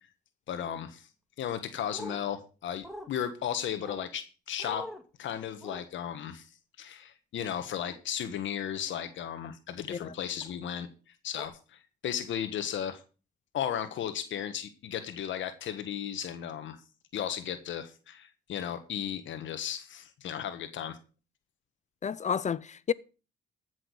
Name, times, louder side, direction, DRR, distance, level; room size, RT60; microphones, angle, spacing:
voice 1, 0.5-1.1 1.4-4.8 5.2-6.5 6.8-10.9 11.2-13.0 13.5-16.8 17.1-21.0, left 9 dB, 75° left, 1.4 m, -35 dB
sound 1, 1.9-2.2 2.8-3.1 3.8-4.1 4.6-5.0 5.6-5.8 7.8-8.0 8.9-9.1 10.4-10.6 11.4-11.5, equal, ahead, 2.0 m, -43 dB
voice 2, 22.0-22.9, left 7 dB, 35° left, 0.6 m, -31 dB
14.5 x 6.3 x 6.3 m
cardioid pair, 90°, 20 cm